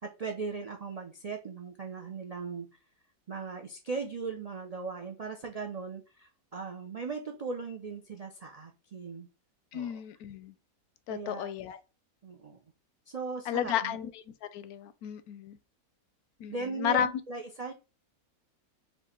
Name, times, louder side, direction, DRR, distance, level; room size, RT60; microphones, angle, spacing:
voice 1, 0.0-2.7 3.3-9.3 9.7-10.0 11.1-11.5 12.2-12.6 13.1-14.0 16.5-17.7, right 4 dB, 65° right, 0.3 m, -38 dB
voice 2, 9.7-10.5 11.1-11.8 13.5-14.2 14.5-15.6 16.4-17.1, left 9 dB, 80° left, 1.1 m, -32 dB
4.5 x 2.5 x 4.3 m
omnidirectional pair, 1.6 m